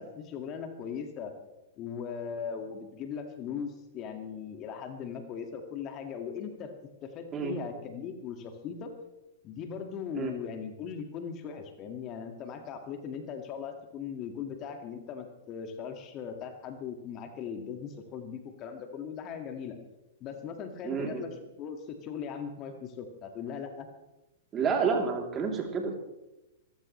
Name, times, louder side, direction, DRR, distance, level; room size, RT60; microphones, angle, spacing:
voice 1, 0.0-1.3 1.8-6.7 7.0-8.9 9.4-19.8 20.2-23.9, left 7 dB, 35° left, 6 dB, 2.0 m, -39 dB
voice 2, 20.8-21.2 24.5-25.9, right 5 dB, 25° right, 2 dB, 3.3 m, -29 dB
24.5 x 15.0 x 3.3 m, 0.96 s
figure-of-eight pair, 105°, 0 cm